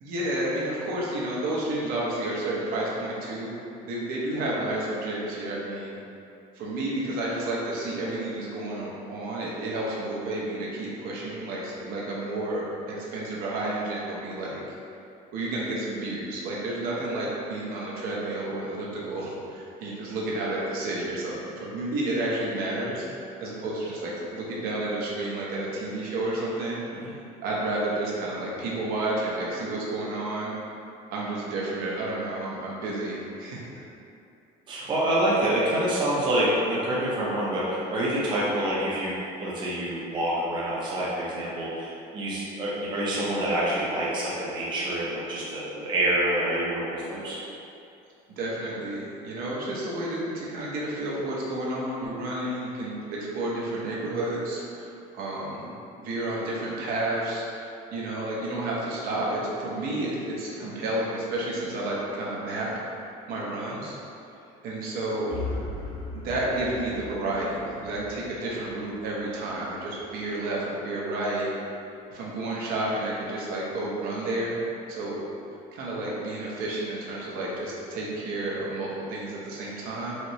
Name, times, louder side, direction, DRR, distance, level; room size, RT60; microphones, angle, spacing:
voice 1, 0.0-3.5 3.8-6.0 6.5-14.6 15.3-23.1 23.4-26.8 27.4-30.5 31.1-33.7 48.3-62.7 63.3-64.0 64.6-65.5 66.1-71.5 72.1-74.6 74.9-75.2 75.7-80.2, right 1 dB, 60° right, -5 dB, 0.7 m, -31 dB
voice 2, 34.7-47.4, right 1 dB, 30° right, -7 dB, 0.6 m, -27 dB
sound 1, 65.3-69.2, left 3 dB, 35° left, 0.8 m, -38 dB
4.3 x 2.0 x 2.7 m, 2.6 s
cardioid pair, 140°, 17 cm